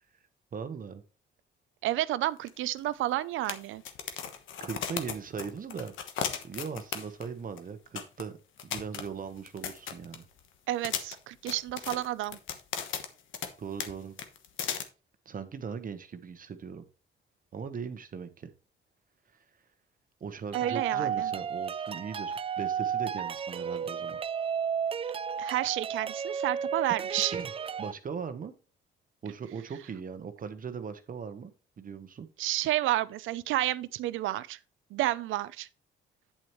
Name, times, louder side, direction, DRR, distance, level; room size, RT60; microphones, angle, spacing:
voice 1, 0.5-1.0 4.6-5.9 6.4-8.4 8.6-10.3 13.6-14.2 15.2-16.8 17.5-18.5 20.2-24.2 27.3-27.5 27.8-28.5 29.2-32.3, right 6 dB, 45° right, 1.1 m, -39 dB
voice 2, 1.8-3.8 10.7-12.4 20.5-21.3 25.4-27.3 32.4-34.6 34.9-35.7, right 15 dB, 85° right, 0.5 m, -30 dB
sound 1, 2.5-2.6 2.8-2.9 3.4-7.3 7.6-7.7 7.9-8.2 8.6-10.4 10.8-13.5 13.8-13.9 14.2-14.8, left 8 dB, 80° left, 1.2 m, -36 dB
sound 2, 20.5-27.9, right 7 dB, 30° right, 0.4 m, -33 dB
8.8 x 7.8 x 3.1 m
cardioid pair, 90°, 20 cm